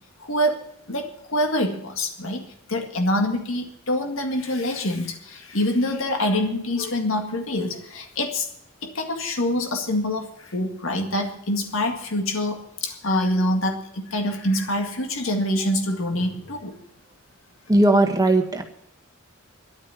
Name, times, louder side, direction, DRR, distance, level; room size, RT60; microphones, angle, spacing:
voice 1, 0.2-2.4 2.7-8.5 8.8-16.7, left 1 dB, 75° left, 4 dB, 1.9 m, -25 dB
voice 2, 17.7-18.6, right 1 dB, 15° right, 4 dB, 1.6 m, -18 dB
11.0 x 9.2 x 9.7 m, 0.74 s
head